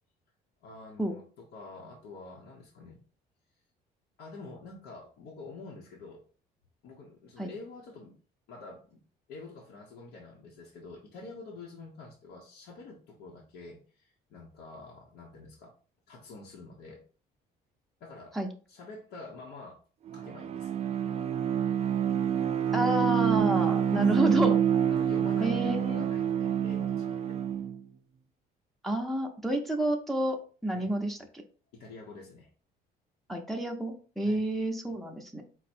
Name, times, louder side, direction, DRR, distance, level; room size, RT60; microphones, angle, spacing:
voice 1, 0.6-3.0 4.2-6.2 6.8-8.2 8.5-9.0 9.3-15.8 16.1-17.0 18.0-18.4 18.7-19.8 20.1-21.3 24.2-24.4 24.9-27.4 30.7-30.9 31.7-32.5 34.2-34.4, left 3 dB, 80° left, -2 dB, 0.9 m, -47 dB
Bowed string instrument, 20.1-27.8, right 9 dB, 40° right, 0.3 m, -27 dB
voice 2, 22.7-24.6 25.4-26.1 28.8-31.4 33.3-35.4, right 1 dB, ahead, 1 dB, 0.6 m, -30 dB
4.6 x 2.2 x 4.2 m, 0.39 s
cardioid pair, 110°, 17 cm